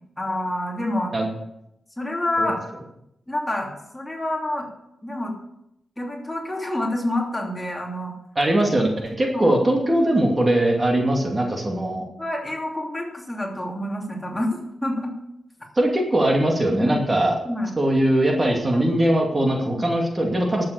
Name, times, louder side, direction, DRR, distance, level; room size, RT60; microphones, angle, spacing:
voice 1, 0.2-1.1 2.0-2.6 3.3-4.7 5.0-5.3 6.0-8.1 9.3-9.6 12.2-15.1 16.7-16.9 17.4-17.7 19.7-19.8, left 1 dB, 15° left, 0 dB, 3.0 m, -27 dB
voice 2, 8.4-12.0 15.8-17.4 17.8-20.6, right 1 dB, 30° right, 1 dB, 2.4 m, -21 dB
12.0 x 7.9 x 6.9 m, 0.82 s
cardioid pair, 80°, 0 cm